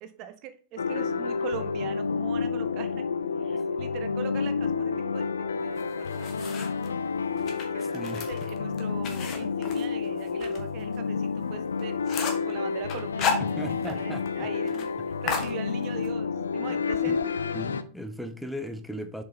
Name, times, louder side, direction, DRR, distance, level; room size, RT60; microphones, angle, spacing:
voice 1, 0.0-3.1 3.4-6.9 7.7-12.0 12.5-13.6 13.9-14.9 15.2-17.4, right 10 dB, 40° right, 9 dB, 0.7 m, -42 dB
sound 1, 0.8-17.8, left 5 dB, 70° left, 0.4 m, -30 dB
sound 2, 5.8-6.9 7.4-10.6 10.9-11.0 11.4-11.5 11.8-12.5 12.9-14.0 14.3-14.4 14.7-14.9 15.3-16.1, left 6 dB, 35° left, 1.5 m, -33 dB
voice 2, 13.4-14.5 16.7-17.2 17.5-19.2, equal, ahead, 8 dB, 0.7 m, -37 dB
7.2 x 4.8 x 3.9 m, 0.40 s
figure-of-eight pair, 90°, 0 cm